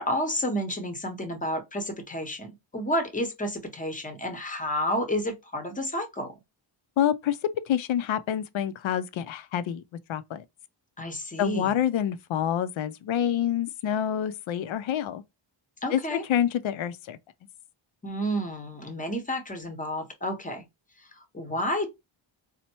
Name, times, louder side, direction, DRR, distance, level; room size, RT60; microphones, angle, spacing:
voice 1, 0.0-6.3 11.0-11.7 15.8-16.2 18.0-20.6 21.0-21.9, equal, 15° left, 0.7 m, -30 dB
voice 2, 7.0-9.8 10.1-10.4 11.4-15.2 15.9-17.2, left 10 dB, 75° left, 0.6 m, -27 dB
4.3 x 2.1 x 2.9 m
wide cardioid pair, 135°, 48 cm